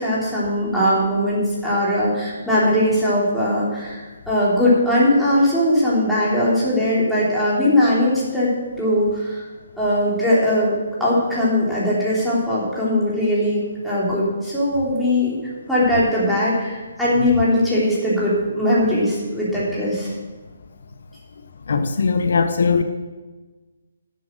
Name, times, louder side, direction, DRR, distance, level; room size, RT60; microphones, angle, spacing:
voice 1, 0.0-8.5 8.8-9.4 9.8-10.7 11.0-15.4 15.7-20.1, left 1 dB, ahead, 3.2 m, -20 dB
voice 2, 21.7-22.8, left 5 dB, 65° left, 0.7 m, -19 dB
9.4 x 7.6 x 6.3 m
hypercardioid pair, 160°, 0 cm